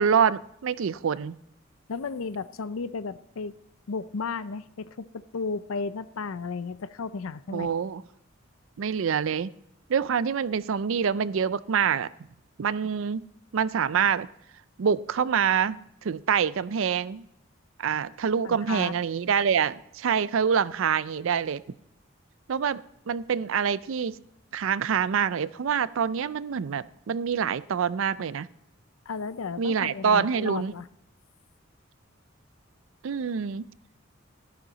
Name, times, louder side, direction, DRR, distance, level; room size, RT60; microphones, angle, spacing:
voice 1, 0.0-1.4 7.5-8.0 8.8-9.5 9.9-12.1 12.6-13.2 13.5-14.3 14.8-15.8 16.0-17.2 17.8-21.6 22.5-24.2 24.5-28.5 29.6-30.7 33.0-33.6, right 7 dB, 70° right, 18 dB, 0.4 m, -26 dB
voice 2, 1.9-3.5 3.9-7.7 18.4-18.9 29.1-30.9, left 4 dB, 85° left, 16 dB, 0.5 m, -34 dB
12.0 x 12.0 x 4.0 m, 0.78 s
head